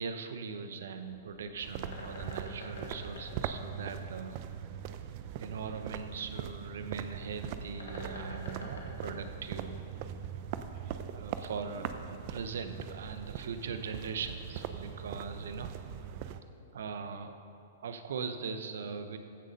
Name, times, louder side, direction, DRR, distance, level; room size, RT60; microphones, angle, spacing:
voice 1, 0.0-4.4 5.4-9.9 11.1-15.8 16.7-17.3 17.8-19.2, right 5 dB, 70° right, 8 dB, 1.0 m, -40 dB
Bird, 1.0-10.2, left 2 dB, 80° left, 2.1 m, -49 dB
sound 1, 1.6-16.4, right 9 dB, 45° right, 0.6 m, -41 dB
15.0 x 6.5 x 5.4 m, 2.7 s
hypercardioid pair, 115°, 0 cm